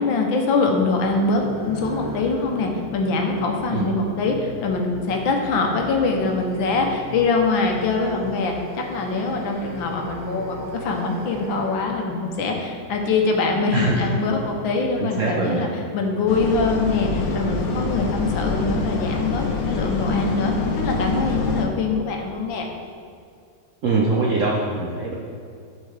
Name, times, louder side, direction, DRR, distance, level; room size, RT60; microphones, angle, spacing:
voice 1, 0.0-15.7 15.9-22.7, left 3 dB, 80° left, 2 dB, 1.6 m, -23 dB
sound 1, 0.8-14.6, right 1 dB, 25° right, 0.4 m, -38 dB
voice 2, 13.7-14.1 15.0-15.7 23.8-25.1, right 3 dB, 60° right, -3 dB, 0.8 m, -23 dB
sound 2, 16.3-21.7, left 3 dB, 60° left, 1.0 m, -25 dB
12.0 x 4.5 x 3.3 m, 2.3 s
omnidirectional pair, 2.1 m